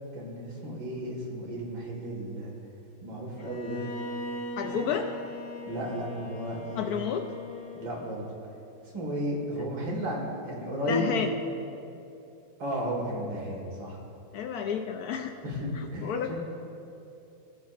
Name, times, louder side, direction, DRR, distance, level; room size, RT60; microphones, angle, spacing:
voice 1, 0.1-2.5 3.0-3.8 4.8-4.9 5.6-7.0 7.7-8.2 8.9-11.2 12.6-14.0 15.4-16.4, equal, 80° right, -3 dB, 2.6 m, -33 dB
Bowed string instrument, 3.4-8.4, left 2 dB, 60° left, 0.5 m, -40 dB
voice 2, 4.6-5.1 6.8-7.3 10.9-11.3 14.3-15.3 16.0-16.3, left 7 dB, 75° left, 4 dB, 0.8 m, -30 dB
18.5 x 6.6 x 2.5 m, 2.7 s
omnidirectional pair, 2.1 m